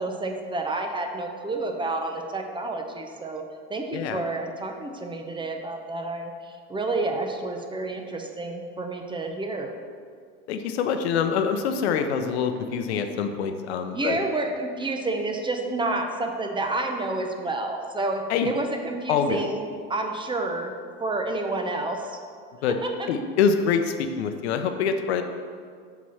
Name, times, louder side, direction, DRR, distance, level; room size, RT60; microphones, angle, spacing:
voice 1, 0.0-3.4 3.7-9.7 13.9-20.7 21.0-22.2 22.7-23.1, right 2 dB, 15° right, 4 dB, 0.7 m, -29 dB
voice 2, 10.5-14.2 18.3-18.5 19.1-19.4 22.6-22.8 23.1-25.2, left 6 dB, 85° left, 7 dB, 0.7 m, -25 dB
5.8 x 4.7 x 5.6 m, 2.1 s
hypercardioid pair, 100°, 32 cm